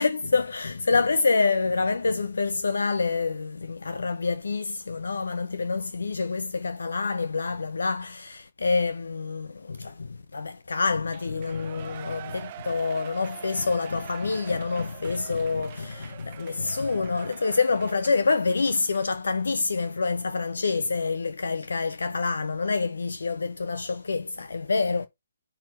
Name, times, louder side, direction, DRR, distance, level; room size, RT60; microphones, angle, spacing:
voice 1, 0.0-25.1, left 4 dB, 65° left, 0.8 m, -27 dB
Shout / Cheering, 11.1-19.4 19.8-19.9, right 12 dB, 35° right, 0.8 m, -44 dB
10.5 x 3.9 x 4.3 m
figure-of-eight pair, 135°, 0 cm